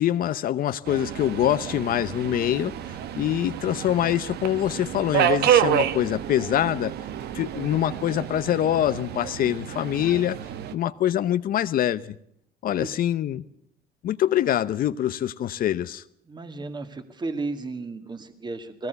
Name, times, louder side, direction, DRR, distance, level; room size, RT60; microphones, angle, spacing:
voice 1, 0.0-2.8 3.2-6.9 7.3-10.4 10.7-12.2 12.6-13.4 14.0-16.0, left 11 dB, 60° left, 13 dB, 0.8 m, -24 dB
Subway metro underground, 0.9-10.7, right 10 dB, 70° right, 1.3 m, -28 dB
voice 2, 16.2-18.9, right 3 dB, 25° right, 8 dB, 2.1 m, -34 dB
20.5 x 18.0 x 8.2 m, 0.70 s
cardioid pair, 110°, 17 cm